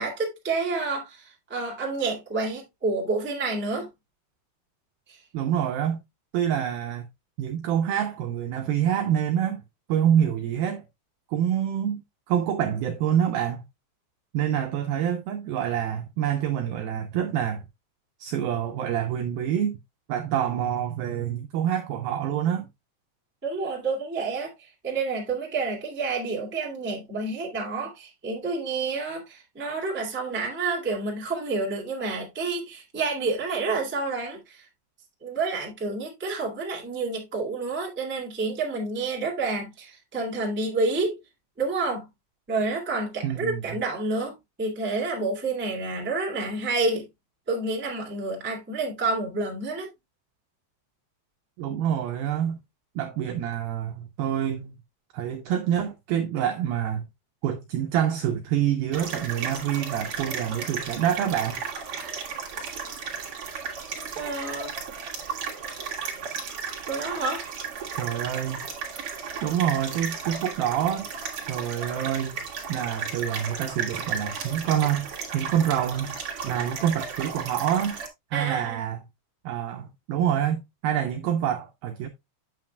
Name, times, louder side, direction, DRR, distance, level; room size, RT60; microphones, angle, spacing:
voice 1, 0.0-3.9 5.1-5.2 23.4-24.5 24.8-34.7 35.2-41.2 41.6-42.1 42.5-47.0 47.5-49.9 64.1-64.7 66.9-67.4 78.3-78.8, right 3 dB, 5° right, 1.0 m, -29 dB
voice 2, 5.3-6.0 6.3-7.1 7.4-9.6 9.9-10.9 11.3-12.0 12.3-13.6 14.3-17.6 18.2-19.8 20.1-22.7 43.2-43.6 51.6-52.6 53.0-54.8 55.1-57.0 57.4-61.6 68.0-68.7 69.4-71.1 71.5-72.4 72.7-75.1 75.3-76.2 76.4-78.0 78.3-79.0 79.4-82.1, right 9 dB, 85° right, 2.1 m, -26 dB
sound 1, 58.9-78.1, right 6 dB, 45° right, 1.9 m, -34 dB
8.6 x 7.5 x 2.3 m
omnidirectional pair, 5.1 m